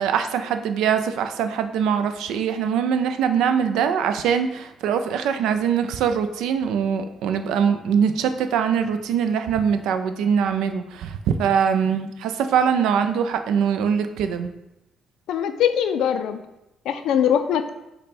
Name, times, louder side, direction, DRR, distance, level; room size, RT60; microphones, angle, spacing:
voice 1, 0.0-14.5, right 7 dB, 90° right, 8 dB, 0.3 m, -22 dB
voice 2, 15.3-16.4 16.9-17.7, left 9 dB, 85° left, 9 dB, 0.3 m, -21 dB
5.2 x 2.1 x 4.2 m, 0.93 s
cardioid pair, 90°, 0 cm